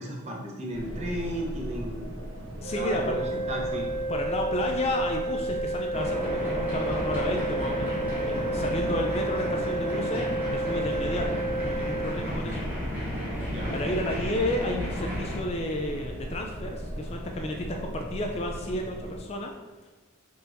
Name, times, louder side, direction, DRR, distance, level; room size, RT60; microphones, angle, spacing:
voice 1, 0.0-2.1 2.7-3.9 13.5-13.8, right 1 dB, 30° right, -1 dB, 0.7 m, -34 dB
sound 1, 0.7-19.2, equal, 75° right, 0.8 m, -39 dB
sound 2, 2.6-12.3, right 2 dB, 70° left, 1.2 m, -31 dB
voice 2, 2.6-3.2 4.1-12.7 13.2-13.3 13.7-19.5, left 1 dB, 30° left, 2 dB, 0.3 m, -32 dB
sound 3, 5.9-15.4, equal, 10° right, 1.0 m, -33 dB
5.2 x 4.0 x 2.5 m, 1.2 s
head